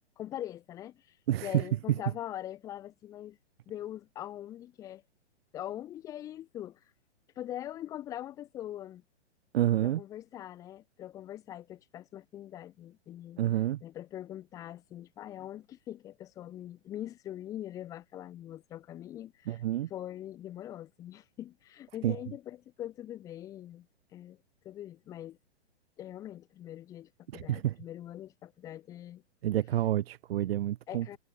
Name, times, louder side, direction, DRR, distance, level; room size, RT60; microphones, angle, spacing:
voice 1, 0.2-1.2 1.4-3.4 3.7-5.0 5.5-6.8 7.4-9.0 9.8-13.4 13.8-19.6 19.9-23.9 24.1-24.4 24.6-25.4 26.0-29.2 30.9-31.2, left 12 dB, 10° left, 0.4 m, -42 dB
voice 2, 1.3-2.0 9.5-10.0 13.4-13.8 19.5-19.9 22.0-22.2 27.3-27.8 29.4-31.2, right 12 dB, 60° right, 1.3 m, -29 dB
hypercardioid pair, 140°, 34 cm